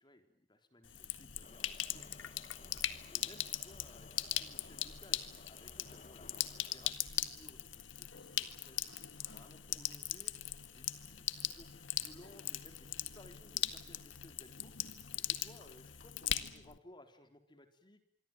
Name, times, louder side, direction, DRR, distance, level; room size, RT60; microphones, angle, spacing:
voice 1, 0.0-18.0, left 1 dB, 25° left, 7 dB, 4.0 m, -60 dB
Sink (filling or washing), 0.8-16.8, left 12 dB, 85° left, 1.8 m, -40 dB
Subway metro underground, 1.4-6.9, left 3 dB, 40° left, 1.7 m, -59 dB
26.0 x 23.5 x 9.2 m, 0.63 s
head